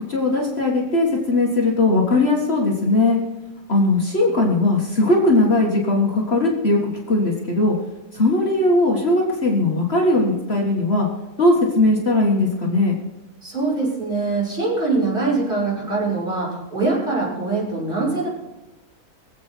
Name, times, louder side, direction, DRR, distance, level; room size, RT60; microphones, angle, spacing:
voice 1, 0.1-3.2 3.7-7.8 8.1-11.1 11.4-12.9, left 2 dB, 45° left, -2 dB, 2.1 m, -19 dB
voice 2, 13.4-18.3, right 3 dB, 35° right, -6 dB, 6.6 m, -23 dB
23.5 x 8.2 x 4.6 m, 1.0 s
omnidirectional pair, 1.6 m